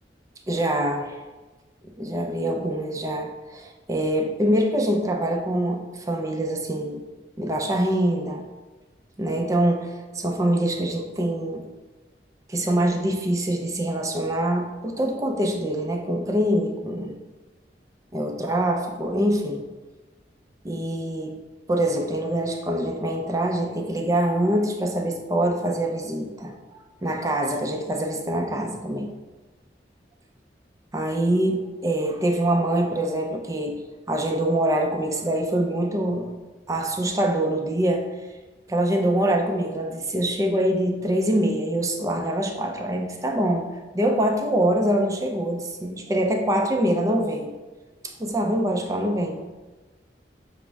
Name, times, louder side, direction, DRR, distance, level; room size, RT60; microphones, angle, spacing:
voice 1, 0.5-1.2 1.8-7.0 7.4-8.4 9.2-11.6 12.5-17.1 18.1-19.7 20.6-21.4 21.7-26.5 27.0-29.1 30.9-33.8 34.1-36.3 36.7-38.1 38.7-43.7 43.9-47.6 48.0-49.5, right 1 dB, 20° right, 3 dB, 0.4 m, -24 dB
6.0 x 2.0 x 3.3 m, 1.2 s
head